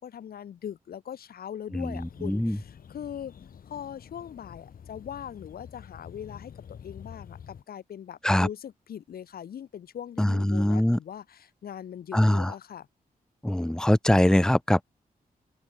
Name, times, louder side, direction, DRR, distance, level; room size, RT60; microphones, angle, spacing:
voice 1, 0.0-3.3 3.7-12.9, left 9 dB, 85° left, 2.3 m, -41 dB
sound 1, 1.8-7.6, left 7 dB, 70° left, 6.3 m, -48 dB
voice 2, 2.2-2.6 8.2-8.5 10.2-11.0 12.1-12.5 13.4-14.8, left 1 dB, 5° left, 1.0 m, -22 dB
open air
wide cardioid pair, 115°, 15 cm